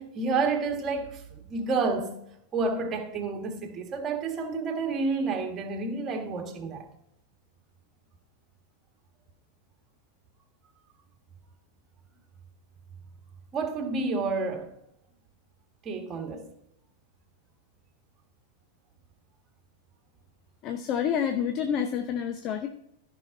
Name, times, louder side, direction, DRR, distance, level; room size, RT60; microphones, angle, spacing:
voice 1, 0.0-2.1 2.5-6.9 13.5-14.7 15.8-16.5, right 4 dB, 25° right, 1.7 m, -30 dB
voice 2, 20.6-22.7, left 8 dB, 35° left, 0.6 m, -28 dB
13.5 x 5.6 x 4.0 m
figure-of-eight pair, 90°, 0 cm